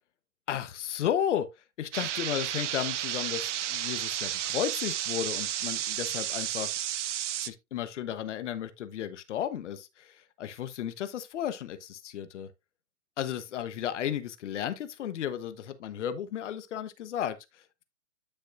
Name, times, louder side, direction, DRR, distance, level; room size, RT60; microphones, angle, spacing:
voice 1, 0.5-1.5 1.8-6.7 7.4-12.5 13.2-17.8, left 10 dB, 55° left, 1.1 m, -34 dB
sound 1, 1.9-7.5, right 11 dB, 55° right, 0.8 m, -32 dB
10.0 x 6.3 x 2.5 m
hypercardioid pair, 135°, 43 cm